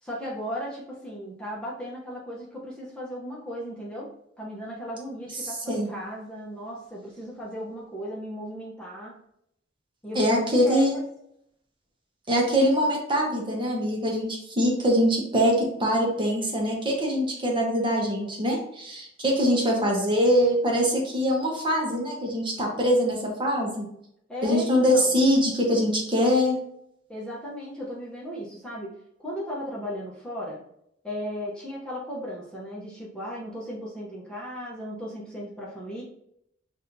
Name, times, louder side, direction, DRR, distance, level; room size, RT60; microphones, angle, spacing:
voice 1, 0.0-4.1 4.4-9.2 10.0-11.0 19.5-19.8 24.3-25.2 27.1-28.9 29.2-30.6 31.0-36.0, equal, 5° left, -5 dB, 0.9 m, -36 dB
voice 2, 5.4-5.9 10.1-10.9 12.3-23.8 24.4-26.6, equal, 25° right, -1 dB, 1.1 m, -23 dB
6.3 x 2.6 x 2.7 m, 0.74 s
head